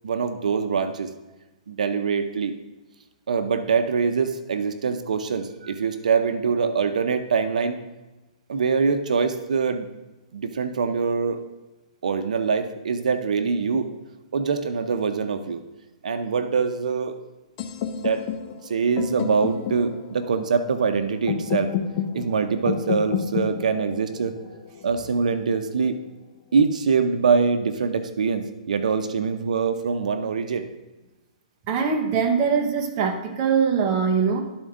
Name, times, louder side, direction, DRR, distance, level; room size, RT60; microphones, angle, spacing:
voice 1, 0.0-1.1 1.7-2.5 3.3-7.8 8.5-9.9 10.3-11.4 12.0-13.9 14.3-15.6 16.0-17.2 17.9-18.2 18.6-21.7 22.1-24.3 24.8-26.0 26.5-30.7, right 5 dB, 85° right, 8 dB, 0.7 m, -24 dB
sound 1, 17.6-25.5, left 8 dB, 35° left, 0.7 m, -31 dB
voice 2, 31.7-34.4, right 6 dB, 30° right, 4 dB, 0.8 m, -22 dB
12.5 x 4.4 x 3.7 m, 1.1 s
hypercardioid pair, 160°, 4 cm